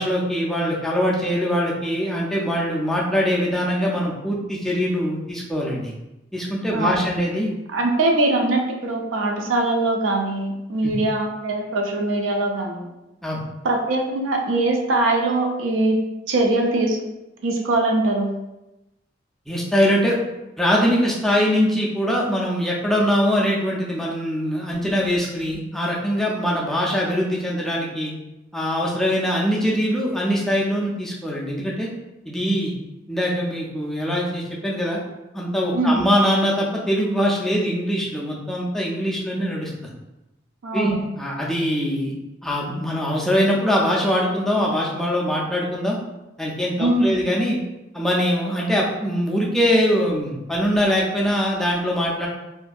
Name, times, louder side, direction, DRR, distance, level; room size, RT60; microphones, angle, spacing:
voice 1, 0.0-5.9 6.3-7.5 10.8-10.9 13.2-13.4 19.5-20.2 20.6-28.1 28.5-31.9 32.3-32.7 33.1-35.0 35.3-39.9 40.7-42.1 42.4-46.0 46.4-47.6 47.9-52.3, equal, ahead, -4 dB, 0.3 m, -22 dB
voice 2, 6.7-7.0 7.7-12.9 13.6-16.0 16.3-17.0 17.4-18.3 35.7-36.0 40.6-41.0 46.8-47.1, right 2 dB, 85° right, 2 dB, 0.4 m, -21 dB
2.5 x 2.5 x 2.3 m, 0.96 s
head